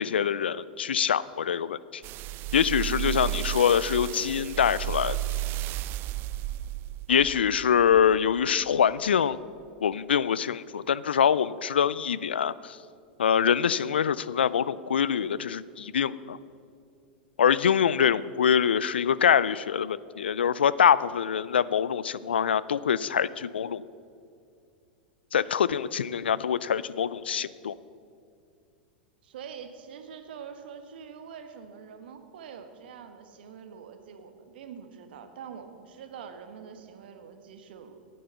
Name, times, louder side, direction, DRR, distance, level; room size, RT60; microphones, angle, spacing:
voice 1, 0.0-2.0 2.5-5.2 7.1-9.4 9.8-12.8 13.2-16.4 17.4-23.8 25.3-27.7, left 8 dB, 85° left, 19 dB, 0.4 m, -24 dB
sound 1, 2.0-8.5 9.1-9.2, right 15 dB, 40° right, 0.4 m, -33 dB
voice 2, 2.8-3.4 29.2-38.1, right 7 dB, 70° right, 7 dB, 1.4 m, -45 dB
11.0 x 9.3 x 7.9 m, 2.4 s
hypercardioid pair, 100°, 6 cm